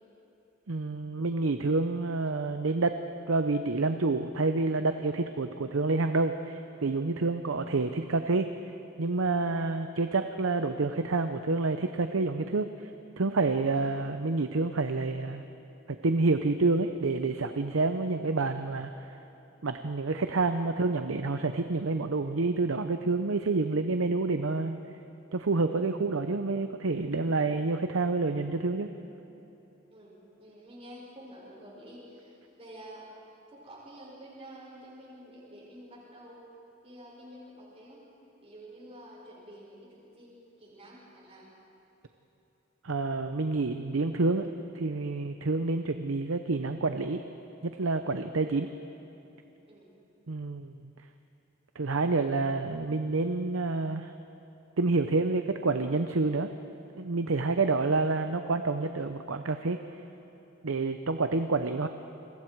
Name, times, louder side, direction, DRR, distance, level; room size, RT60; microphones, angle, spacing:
voice 1, 0.7-3.0 3.3-8.5 9.0-12.7 13.2-15.4 16.0-18.9 19.6-24.8 25.3-28.9 42.8-44.5 44.7-47.2 47.6-48.7 50.3-50.9 51.8-54.1 54.8-56.5 57.0-59.8 60.6-61.9, right 3 dB, 90° right, 8 dB, 0.8 m, -28 dB
voice 2, 9.3-9.7 13.7-14.0 29.9-33.1 33.5-36.4 36.8-38.0 38.4-40.3 40.6-41.5 49.7-49.9, right 1 dB, 30° right, -6 dB, 6.7 m, -49 dB
28.5 x 22.5 x 4.7 m, 3.0 s
head